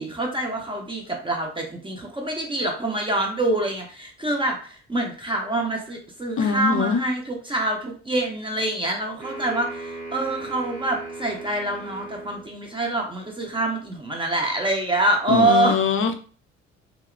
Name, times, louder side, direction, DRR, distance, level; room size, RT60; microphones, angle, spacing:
voice 1, 0.0-15.8, right 2 dB, 15° right, 1 dB, 0.7 m, -25 dB
voice 2, 6.4-7.0 15.3-16.2, left 5 dB, 35° left, 6 dB, 0.5 m, -22 dB
sound 1, 9.2-12.5, right 2 dB, 85° right, 0.8 m, -37 dB
2.7 x 2.0 x 2.4 m, 0.40 s
figure-of-eight pair, 50°, 35 cm